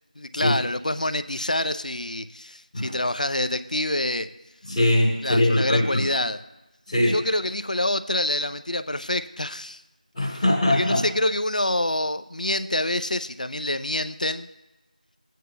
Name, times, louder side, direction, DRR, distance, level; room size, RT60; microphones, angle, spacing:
voice 1, 0.2-4.3 5.2-6.4 7.0-9.8 10.7-14.5, left 1 dB, 65° left, 12 dB, 0.6 m, -26 dB
voice 2, 4.6-6.0 6.9-7.2 10.1-11.0, left 1 dB, 5° left, -17 dB, 0.9 m, -21 dB
17.5 x 9.2 x 2.3 m, 1.0 s
figure-of-eight pair, 175°, 5 cm